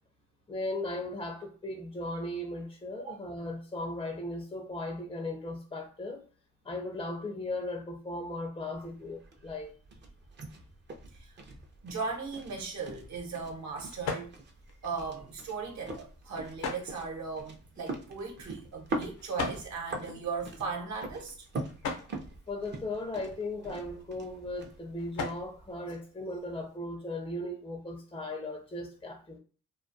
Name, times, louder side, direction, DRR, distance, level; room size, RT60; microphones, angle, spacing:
voice 1, 0.5-6.3 6.6-9.7 22.5-29.4, left 2 dB, 15° left, 0.4 m, -37 dB
sound 1, 8.7-25.7, right 2 dB, 35° right, 0.5 m, -43 dB
voice 2, 11.8-14.3 14.8-21.5, right 4 dB, 65° right, 1.0 m, -37 dB
sound 2, 12.4-26.8, left 4 dB, 85° left, 0.6 m, -43 dB
2.2 x 2.2 x 2.6 m
cardioid pair, 90°, 30 cm